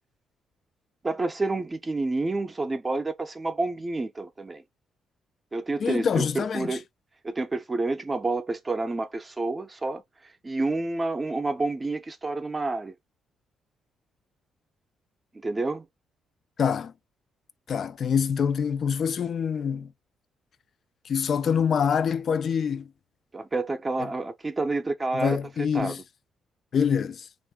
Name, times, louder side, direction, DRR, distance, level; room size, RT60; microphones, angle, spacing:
voice 1, 1.0-4.6 5.5-6.8 7.2-12.9 15.3-15.9 23.3-26.0, right 2 dB, 25° right, 0.5 m, -29 dB
voice 2, 5.8-6.8 16.6-16.9 17.7-19.9 21.1-22.9 25.1-26.0 26.7-27.3, left 7 dB, 55° left, 0.3 m, -25 dB
2.6 x 2.5 x 3.5 m
cardioid pair, 90°, 0 cm